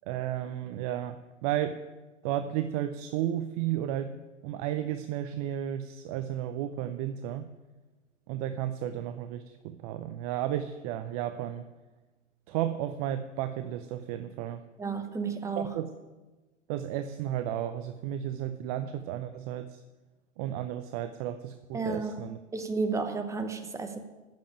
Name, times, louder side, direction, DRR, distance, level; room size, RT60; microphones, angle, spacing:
voice 1, 0.1-1.8 2.2-4.2 4.4-7.5 8.3-11.7 12.5-14.6 15.6-15.9 16.7-19.8 20.4-22.4, right 11 dB, 30° right, 0.5 m, -33 dB
voice 2, 14.8-15.8 21.7-22.1 22.5-24.0, right 4 dB, 10° right, 1.0 m, -32 dB
10.5 x 7.5 x 8.8 m
hypercardioid pair, 110°, 37 cm